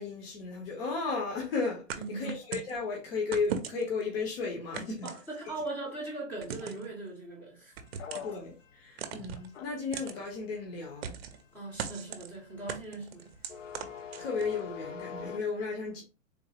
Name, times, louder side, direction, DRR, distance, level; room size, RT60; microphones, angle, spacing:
voice 1, 0.0-5.1 8.2-11.1 14.2-16.0, left 4 dB, 45° left, 1.0 m, -34 dB
sound 1, 1.9-2.8 3.3-4.0 4.7-5.7 6.4-6.9 7.8-8.4 9.0-9.5 9.9-10.2 11.0-11.4 11.8-12.3 12.7-14.6, right 8 dB, 50° right, 0.6 m, -39 dB
voice 2, 2.0-2.3 5.0-8.1 11.5-13.3, right 2 dB, 5° left, 0.6 m, -40 dB
sound 2, 7.8-15.4, left 7 dB, 70° left, 0.6 m, -45 dB
3.7 x 2.4 x 2.8 m
hypercardioid pair, 160°, 39 cm